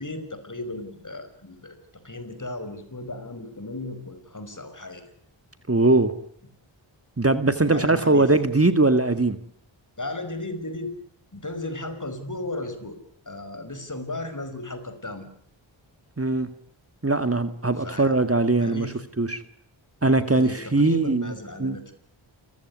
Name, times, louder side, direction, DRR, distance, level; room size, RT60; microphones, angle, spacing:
voice 1, 0.0-1.8 2.0-5.0 7.6-8.3 10.0-10.9 11.3-13.0 13.3-15.3 17.8-18.1 18.6-19.0 20.3-21.9, left 2 dB, 40° left, 10 dB, 5.7 m, -35 dB
voice 2, 5.7-6.1 7.2-9.4 16.2-16.5 17.0-19.4 20.0-21.3 21.6-21.8, right 2 dB, 30° right, 10 dB, 2.0 m, -21 dB
29.0 x 16.0 x 9.6 m, 0.68 s
cardioid pair, 45°, 48 cm